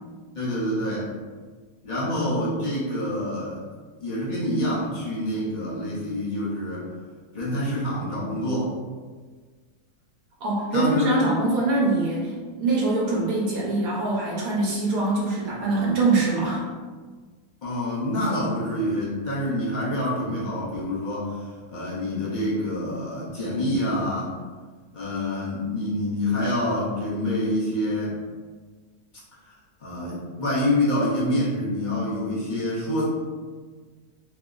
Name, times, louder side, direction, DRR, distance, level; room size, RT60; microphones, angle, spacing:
voice 1, 0.3-1.1 1.8-3.6 4.0-6.9 7.3-8.7 10.7-11.3 17.6-24.3 24.9-28.2 29.4-29.5 29.8-33.0, left 1 dB, 40° left, -7 dB, 0.7 m, -26 dB
voice 2, 10.4-16.6, right 2 dB, 75° right, -5 dB, 1.2 m, -23 dB
3.1 x 2.0 x 3.6 m, 1.4 s
omnidirectional pair, 1.6 m